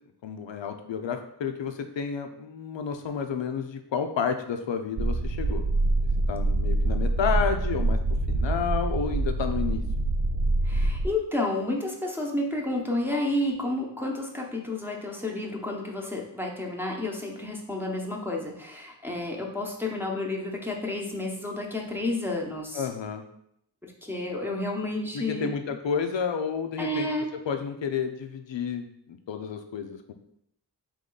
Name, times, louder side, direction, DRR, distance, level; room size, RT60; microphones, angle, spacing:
voice 1, 0.2-5.9 6.3-8.0 8.3-9.8 22.7-23.2 25.1-30.1, left 6 dB, 85° left, 7 dB, 0.6 m, -31 dB
sound 1, 5.0-11.1, right 2 dB, 40° right, 0.4 m, -25 dB
voice 2, 10.6-22.9 23.8-25.5 26.8-27.3, left 2 dB, 5° right, -2 dB, 0.8 m, -31 dB
3.6 x 3.2 x 3.8 m, 0.74 s
wide cardioid pair, 40°, 43 cm